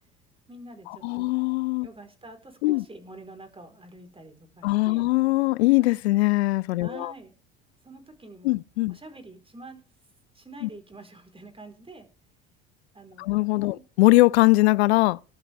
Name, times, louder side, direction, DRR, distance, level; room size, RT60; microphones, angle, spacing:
voice 1, 0.5-1.3 1.8-5.1 6.8-7.4 7.8-8.6 8.9-9.8 10.3-12.1 12.9-13.4 13.6-13.8, right 2 dB, 15° right, 4.5 m, -46 dB
voice 2, 1.0-1.9 2.6-2.8 4.6-7.1 8.4-9.0 10.6-10.7 13.2-15.2, left 20 dB, 80° left, 0.6 m, -21 dB
19.5 x 11.5 x 3.5 m
hypercardioid pair, 65°, 32 cm